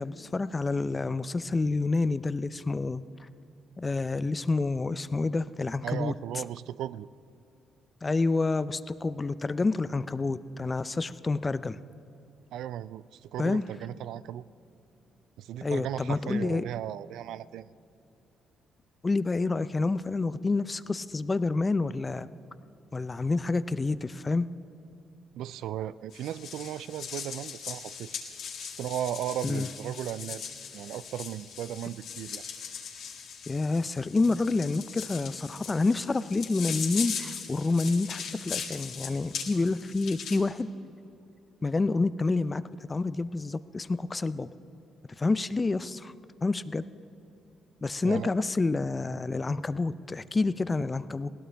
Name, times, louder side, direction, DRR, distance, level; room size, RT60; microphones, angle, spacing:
voice 1, 0.0-3.0 3.8-6.4 8.0-11.8 13.4-13.7 15.6-16.6 19.0-22.3 22.9-24.5 29.4-29.7 33.5-40.7 41.6-42.6 42.9-44.5 45.2-46.1 46.4-46.8 47.8-51.3, left 3 dB, 25° left, 14 dB, 0.5 m, -28 dB
voice 2, 5.8-7.1 12.5-14.4 15.4-17.7 25.3-28.2 28.6-30.4 30.7-32.4 48.0-48.3, right 11 dB, 85° right, 17 dB, 0.3 m, -36 dB
sound 1, 26.1-40.4, left 7 dB, 75° left, 2.1 m, -39 dB
21.0 x 17.0 x 3.4 m, 2.8 s
cardioid pair, 90°, 0 cm